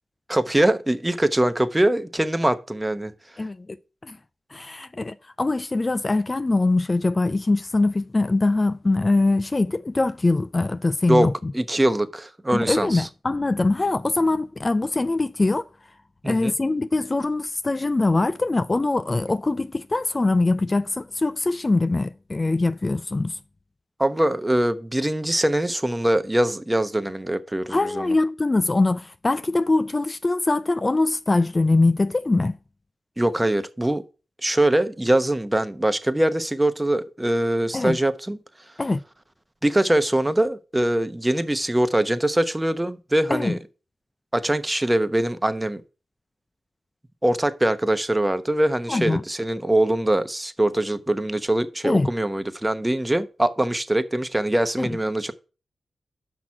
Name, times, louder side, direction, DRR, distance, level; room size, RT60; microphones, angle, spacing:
voice 1, 0.3-3.1 11.1-11.3 11.5-13.1 16.2-16.5 24.0-28.2 33.2-34.0 34.4-38.4 39.6-43.6 44.3-45.8 47.2-55.3, right 1 dB, 15° right, 1.0 m, -22 dB
voice 2, 4.5-11.5 12.5-15.6 16.2-23.4 27.7-32.5 37.7-38.0 38.8-39.0 43.3-43.6 48.9-49.2 51.8-52.1 54.8-54.9, left 2 dB, 30° left, 0.4 m, -22 dB
6.1 x 6.1 x 7.2 m
cardioid pair, 55°, 0 cm